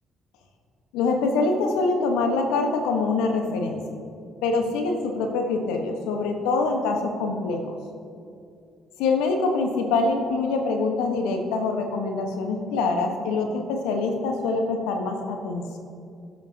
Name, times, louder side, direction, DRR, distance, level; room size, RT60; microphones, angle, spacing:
voice 1, 0.9-3.8 4.4-7.8 9.0-15.8, left 3 dB, 75° left, 4 dB, 1.3 m, -25 dB
21.5 x 7.8 x 2.9 m, 2.5 s
hypercardioid pair, 50°, 0 cm